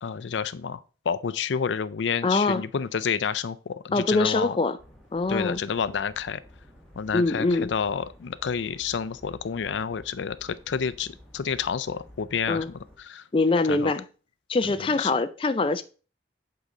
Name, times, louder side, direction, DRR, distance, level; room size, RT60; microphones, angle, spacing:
voice 1, 0.0-0.8 1.1-4.6 5.3-6.4 7.0-12.6 13.0-13.2 13.7-13.9 15.0-15.1, left 6 dB, 85° left, 0.5 m, -29 dB
voice 2, 2.2-2.6 3.9-4.8 5.1-5.6 7.1-7.7 12.5-12.7 13.3-14.0 14.5-15.8, left 3 dB, 30° left, 0.4 m, -23 dB
sound 1, 4.8-13.0, left 1 dB, ahead, 1.4 m, -52 dB
8.2 x 3.9 x 4.9 m
head